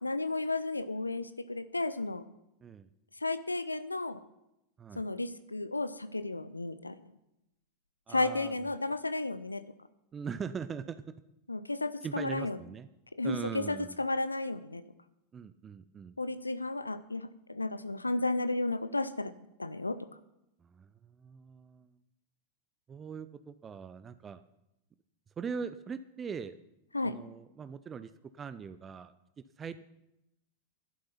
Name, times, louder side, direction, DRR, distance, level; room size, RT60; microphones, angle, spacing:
voice 1, 0.0-2.2 3.2-4.2 5.0-7.0 8.1-9.6 11.5-12.6 13.2-14.8 16.2-19.3 19.6-20.0 26.9-27.2, left 2 dB, 80° left, 14 dB, 0.5 m, -33 dB
voice 2, 8.1-8.6 10.1-11.0 12.0-12.9 13.2-14.0 15.3-16.2 20.6-20.9 21.2-21.9 22.9-24.4 25.4-26.6 27.0-28.1 28.4-29.8, right 6 dB, 20° right, 13 dB, 0.5 m, -41 dB
11.5 x 11.5 x 5.7 m, 0.88 s
figure-of-eight pair, 90°, 0 cm